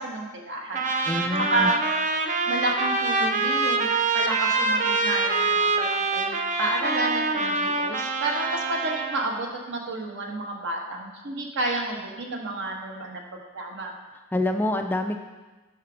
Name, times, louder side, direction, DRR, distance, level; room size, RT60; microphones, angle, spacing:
voice 1, 0.0-1.1 1.5-1.8 2.5-3.9 4.1-13.2 13.5-13.9, right 2 dB, 60° right, 1 dB, 1.4 m, -30 dB
Trumpet, 0.7-9.3, right 3 dB, 35° right, 0.6 m, -25 dB
voice 2, 1.1-1.7 14.3-15.2, left 1 dB, 10° left, 5 dB, 0.3 m, -26 dB
8.8 x 5.9 x 4.9 m, 1.2 s
head